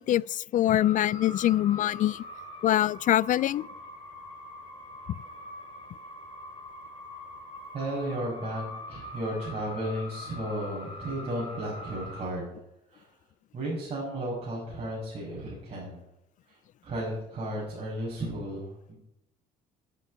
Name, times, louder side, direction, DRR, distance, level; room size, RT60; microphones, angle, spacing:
voice 1, 0.0-2.2 2.6-3.7, left 13 dB, 50° left, 0.4 m, -24 dB
sound 1, 0.7-12.3, left 2 dB, 30° left, 4.7 m, -43 dB
voice 2, 7.7-12.6 12.9-13.1 13.5-16.0 16.5-19.0, right 1 dB, 35° right, 6.1 m, -34 dB
9.8 x 9.0 x 8.9 m
cardioid pair, 110°, 17 cm